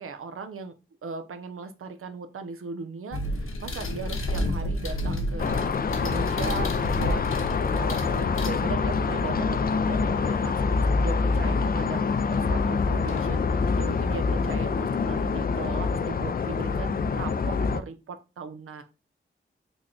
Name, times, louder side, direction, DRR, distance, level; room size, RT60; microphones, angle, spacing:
voice 1, 0.0-0.7 1.0-18.8, right 4 dB, 85° right, 8 dB, 0.5 m, -38 dB
sound 1, 3.1-9.1 11.6-11.7 13.1-13.3 13.7-14.6, left 1 dB, 75° left, 0.7 m, -31 dB
sound 2, 5.4-17.8, left 4 dB, 45° left, 0.4 m, -25 dB
3.4 x 2.2 x 3.7 m, 0.29 s
cardioid pair, 45°, 21 cm